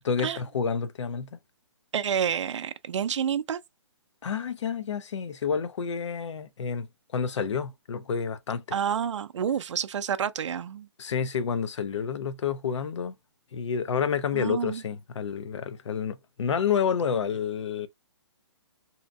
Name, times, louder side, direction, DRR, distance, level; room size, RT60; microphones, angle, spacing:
voice 1, 0.0-1.3 4.2-6.9 7.1-8.6 11.0-13.1 13.5-17.9, left 6 dB, 80° left, 0.5 m, -29 dB
voice 2, 1.9-3.6 8.7-10.9 14.3-14.8, right 8 dB, 85° right, 0.4 m, -29 dB
2.7 x 2.5 x 2.2 m
hypercardioid pair, 165°, 15 cm